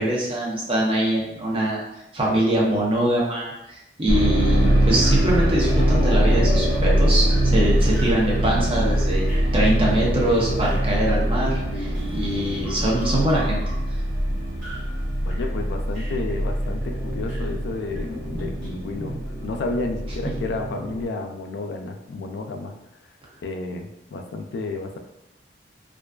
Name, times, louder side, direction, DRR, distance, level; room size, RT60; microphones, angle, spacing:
voice 1, 0.0-1.8 2.1-9.3 9.5-13.6, right 1 dB, 30° right, -4 dB, 0.6 m, -23 dB
sound 1, 4.1-21.0, right 1 dB, 70° right, 0.6 m, -23 dB
sound 2, 4.6-9.7 9.9-15.0 15.3-17.5 17.9-19.2, left 1 dB, 10° left, 1.1 m, -37 dB
voice 2, 15.3-19.1 19.4-22.7 23.4-25.0, left 3 dB, 75° left, 4 dB, 0.3 m, -31 dB
2.5 x 2.3 x 2.2 m, 0.87 s
head